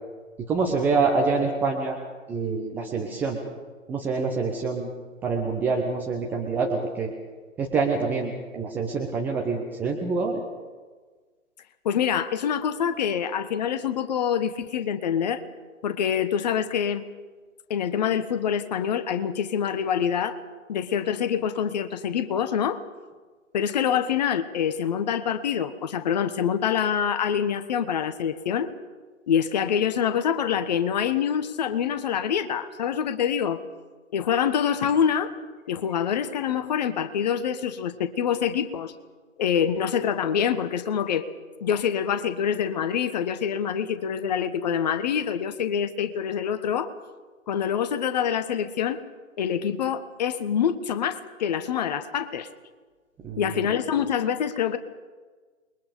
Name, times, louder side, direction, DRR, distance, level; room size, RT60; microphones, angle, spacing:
voice 1, 0.5-2.0 2.3-3.4 3.9-4.9 5.2-7.1 7.6-10.4 53.2-53.4, right 4 dB, 5° right, 0 dB, 0.7 m, -26 dB
voice 2, 11.8-15.4 15.8-17.1 17.7-20.4 20.7-22.8 23.5-28.7 29.3-33.6 34.1-35.3 35.7-38.9 39.4-41.3 41.6-46.9 47.5-49.0 49.4-52.5 53.4-54.8, left 8 dB, 30° left, 11 dB, 1.3 m, -25 dB
28.5 x 22.5 x 5.3 m, 1.4 s
figure-of-eight pair, 140°, 41 cm